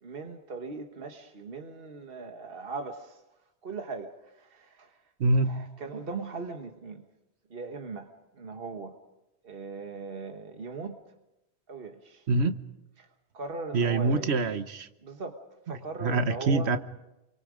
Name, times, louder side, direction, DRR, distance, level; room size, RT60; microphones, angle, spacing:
voice 1, 0.0-3.2 3.6-5.0 5.4-7.0 7.5-8.1 8.3-8.9 9.4-11.0 11.7-12.3 13.0-13.1 13.3-14.5 15.0-15.4 15.7-16.7, right 4 dB, 60° right, 4 dB, 1.5 m, -39 dB
voice 2, 5.2-5.6 12.3-12.6 13.7-14.9 16.0-16.8, right 3 dB, 85° right, 10 dB, 1.3 m, -25 dB
29.0 x 23.5 x 5.2 m, 0.94 s
omnidirectional pair, 1.1 m